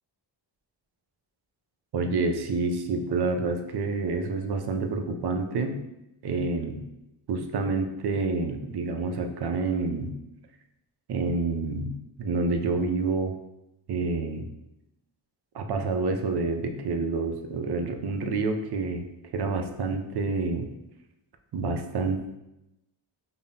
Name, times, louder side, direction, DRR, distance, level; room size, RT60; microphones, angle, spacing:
voice 1, 1.9-5.8 6.2-6.9 7.3-10.1 11.1-13.3 13.9-14.5 15.5-19.1 19.3-20.7 21.5-22.3, right 3 dB, 60° right, 5 dB, 0.5 m, -28 dB
5.3 x 2.0 x 2.7 m, 0.90 s
wide cardioid pair, 90°, 46 cm